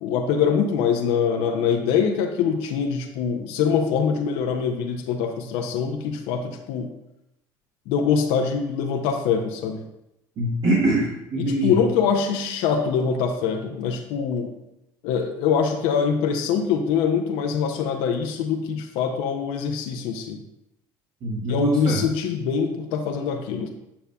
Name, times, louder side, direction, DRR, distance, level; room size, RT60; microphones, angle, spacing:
voice 1, 0.0-6.9 7.9-9.8 11.4-14.5 15.0-20.4 21.4-23.7, left 6 dB, 75° left, 3 dB, 0.7 m, -24 dB
voice 2, 10.4-11.8 21.2-22.0, right 1 dB, 50° right, -5 dB, 1.8 m, -23 dB
8.5 x 5.6 x 2.3 m, 0.86 s
supercardioid pair, 80°, 10 cm